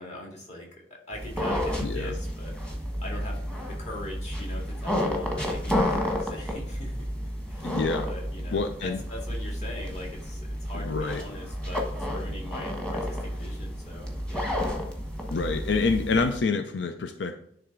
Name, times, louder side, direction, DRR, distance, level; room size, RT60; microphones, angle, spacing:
voice 1, 0.0-2.6 3.0-7.1 7.5-14.6, left 1 dB, 40° left, -1 dB, 2.2 m, -41 dB
sound 1, 1.1-16.4, equal, 5° left, 1.2 m, -31 dB
voice 2, 1.8-2.2 7.6-8.1 8.5-9.0 10.7-11.2 15.3-17.4, left 4 dB, 90° left, 7 dB, 0.5 m, -27 dB
10.0 x 3.4 x 3.7 m, 0.70 s
head